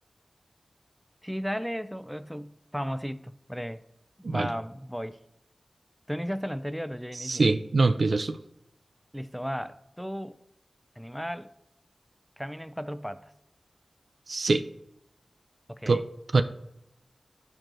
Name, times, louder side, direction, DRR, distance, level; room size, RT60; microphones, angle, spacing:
voice 1, 1.2-3.8 4.2-5.2 6.1-7.5 9.1-10.4 11.0-11.5 12.4-13.3 15.7-16.0, equal, ahead, 0.3 m, -35 dB
voice 2, 7.2-8.4 14.3-14.6 15.9-16.0 16.3-16.4, right 3 dB, 70° right, 0.4 m, -23 dB
11.5 x 4.4 x 2.5 m
wide cardioid pair, 60°, 0 cm